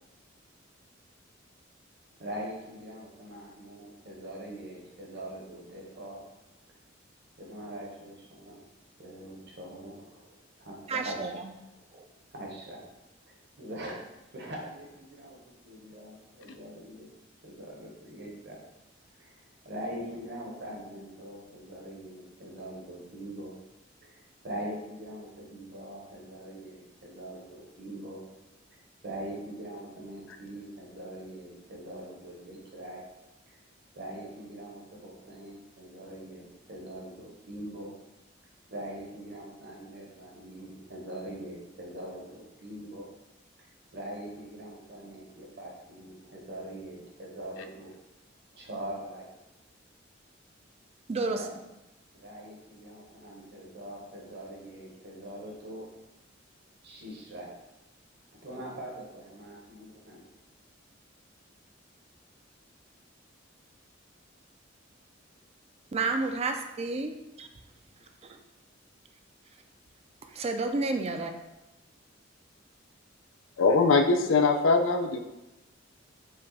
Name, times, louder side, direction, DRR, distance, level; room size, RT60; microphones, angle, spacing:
voice 1, 2.2-6.3 7.4-8.7 9.0-11.3 11.6-11.7 12.3-12.9 13.3-14.0 14.3-15.4 15.6-17.1 17.4-18.6 19.2-19.4 19.6-23.5 24.0-28.2 29.0-33.0 33.5-33.6 33.9-37.9 38.7-43.1 43.9-47.9 48.5-49.3 51.3-51.5 52.1-55.9 56.8-57.5 58.4-60.2, right 1 dB, 60° right, -2 dB, 1.0 m, -42 dB
voice 2, 10.9-11.4 11.9-12.0 51.1-51.5 65.9-67.5 68.2-68.4 70.3-71.3, right 3 dB, 30° right, 5 dB, 0.4 m, -31 dB
voice 3, 73.6-75.2, left 4 dB, 80° left, 6 dB, 0.4 m, -22 dB
5.1 x 2.3 x 4.0 m, 0.96 s
head